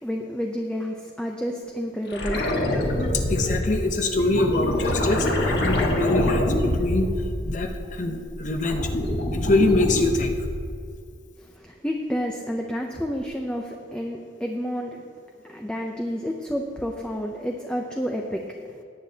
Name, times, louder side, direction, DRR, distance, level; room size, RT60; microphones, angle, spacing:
voice 1, 0.0-2.5 3.1-3.3 11.4-15.0 15.4-18.8, equal, 5° left, 1 dB, 0.6 m, -30 dB
sound 1, 2.1-7.9 8.3-10.8 13.2-13.3, left 1 dB, 60° left, 1.5 m, -26 dB
voice 2, 3.1-7.1 7.4-8.9 9.3-10.4, left 2 dB, 40° left, 5 dB, 0.8 m, -24 dB
17.5 x 9.4 x 2.8 m, 2.3 s
head